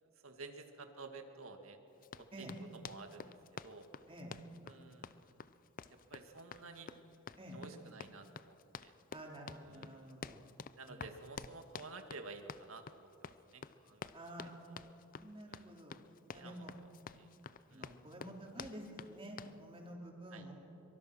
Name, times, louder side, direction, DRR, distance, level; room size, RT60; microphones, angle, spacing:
voice 1, 0.0-1.8 2.2-2.5 2.7-3.3 3.6-3.9 4.6-5.4 5.9-6.9 7.5-8.9 9.6-10.2 10.7-14.3 14.7-14.9 15.5-15.7 16.3-16.9 17.1-17.3 17.7-17.9 20.3-20.5, right 3 dB, 80° right, 6 dB, 2.1 m, -52 dB
Run, 2.0-19.6, left 6 dB, 40° left, 0.5 m, -50 dB
voice 2, 9.1-10.4 10.9-11.1 14.1-14.5 15.2-16.0 16.3-16.7 17.7-20.5, right 1 dB, 25° right, 0 dB, 3.6 m, -50 dB
24.0 x 24.0 x 6.2 m, 2.9 s
head